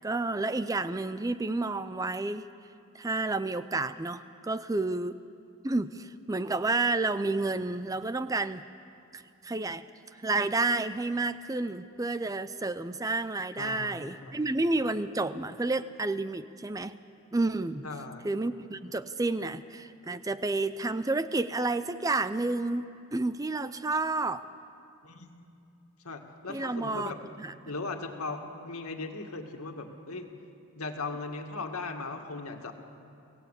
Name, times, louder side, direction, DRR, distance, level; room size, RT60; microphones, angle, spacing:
voice 1, 0.0-2.5 2.9-5.2 5.6-8.6 9.1-9.8 10.1-17.0 17.3-17.9 18.2-24.4 26.5-27.1 27.4-27.5, right 2 dB, 15° right, 13 dB, 0.4 m, -30 dB
voice 2, 13.6-14.0 14.2-14.3 17.8-18.2 25.0-25.3 26.0-27.2 27.7-30.3 30.8-32.7, left 3 dB, 90° left, 4 dB, 2.0 m, -38 dB
24.0 x 17.0 x 8.3 m, 2.7 s
head